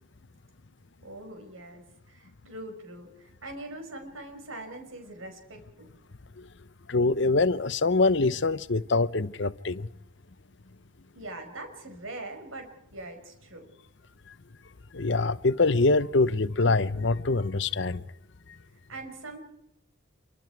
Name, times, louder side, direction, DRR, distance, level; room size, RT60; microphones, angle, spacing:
voice 1, 1.0-5.9 11.1-13.7 18.9-19.4, right 2 dB, 85° right, 5.5 m, -42 dB
voice 2, 6.9-9.9 14.9-18.0, left 3 dB, 60° left, 0.8 m, -24 dB
28.0 x 24.5 x 4.7 m
head